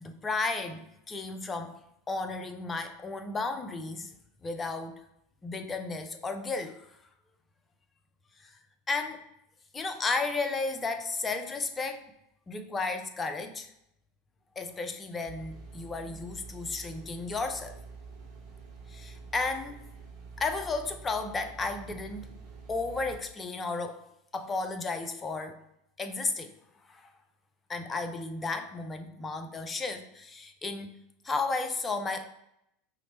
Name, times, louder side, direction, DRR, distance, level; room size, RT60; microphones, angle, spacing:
voice 1, 0.0-1.7 2.1-4.1 4.4-4.9 5.4-6.8 8.4-8.5 8.9-9.2 9.7-12.0 12.5-13.7 14.6-17.8 18.9-19.7 20.4-22.4 22.7-24.0 24.3-25.6 26.0-26.5 26.9-27.1 27.7-30.9 31.2-32.3, left 3 dB, 20° left, 7 dB, 0.5 m, -33 dB
sound 1, 15.3-23.2, right 4 dB, 45° right, 1.1 m, -47 dB
5.6 x 2.2 x 4.1 m, 0.79 s
figure-of-eight pair, 80°, 0 cm